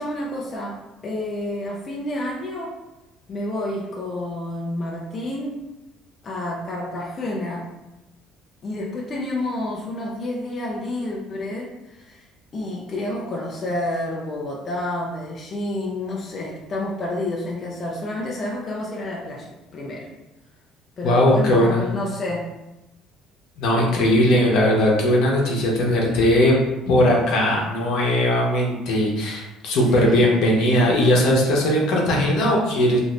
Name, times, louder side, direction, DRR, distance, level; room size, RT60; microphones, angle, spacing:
voice 1, 0.0-2.7 3.3-5.6 6.2-7.6 8.6-20.1 21.0-22.5 29.9-30.4, left 1 dB, 30° left, -3 dB, 0.4 m, -29 dB
voice 2, 21.0-21.8 23.6-26.5 26.9-33.0, left 1 dB, 70° left, -2 dB, 0.8 m, -19 dB
2.6 x 2.6 x 3.1 m, 0.97 s
cardioid pair, 135°, 0 cm